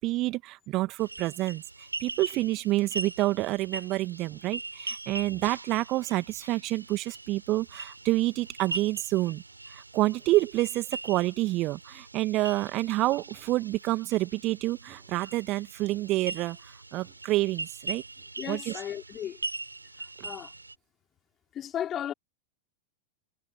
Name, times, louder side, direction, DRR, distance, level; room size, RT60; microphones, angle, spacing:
voice 1, 0.0-1.6 2.0-9.4 9.7-18.0 18.5-18.8, right 18 dB, 40° right, 2.0 m, -28 dB
sound 1, 1.0-20.7, right 3 dB, 80° right, 4.1 m, -41 dB
voice 2, 18.4-19.4 20.2-20.5 21.5-22.1, left 10 dB, 30° left, 5.5 m, -35 dB
figure-of-eight pair, 90°, 0 cm